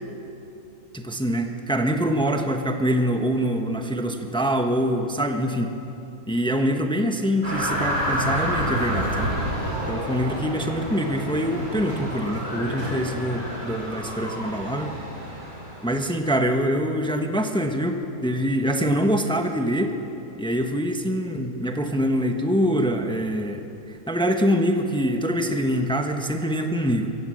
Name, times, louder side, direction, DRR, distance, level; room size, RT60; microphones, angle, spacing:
voice 1, 0.9-5.7 6.3-9.3 9.9-14.9 15.8-19.9 20.4-27.1, equal, 5° left, 4 dB, 1.0 m, -24 dB
sound 1, 7.4-16.0, equal, 85° right, 7.2 m, -29 dB
24.0 x 15.0 x 7.8 m, 2.9 s
omnidirectional pair, 1.6 m